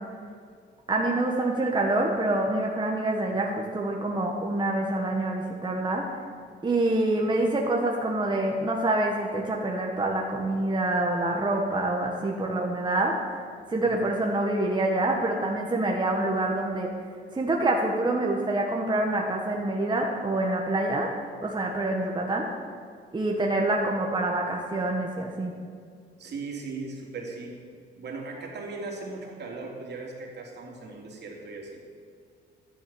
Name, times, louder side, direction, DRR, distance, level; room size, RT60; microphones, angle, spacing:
voice 1, 0.9-6.2 6.6-13.1 13.7-16.9 17.3-21.1 21.4-22.5 23.1-25.5, right 2 dB, 25° right, -1 dB, 1.6 m, -26 dB
voice 2, 26.2-27.6 28.0-31.8, right 3 dB, 60° right, 0 dB, 3.2 m, -38 dB
12.0 x 10.0 x 7.3 m, 2.2 s
cardioid pair, 90°, 20 cm